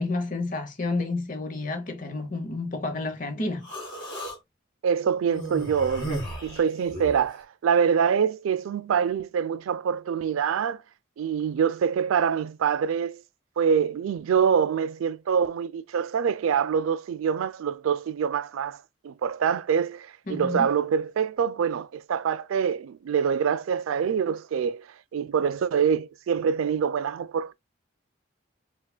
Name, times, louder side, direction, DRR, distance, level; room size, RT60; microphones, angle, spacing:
voice 1, 0.0-3.7 20.3-20.7, left 2 dB, 40° left, 0.8 m, -30 dB
Human voice, 3.6-4.4 5.3-7.3, right 1 dB, 25° left, 1.6 m, -35 dB
voice 2, 4.8-6.1 6.4-10.8 11.2-13.2 13.6-24.8 25.1-27.5, right 7 dB, 90° right, 0.3 m, -25 dB
4.6 x 2.3 x 2.2 m
head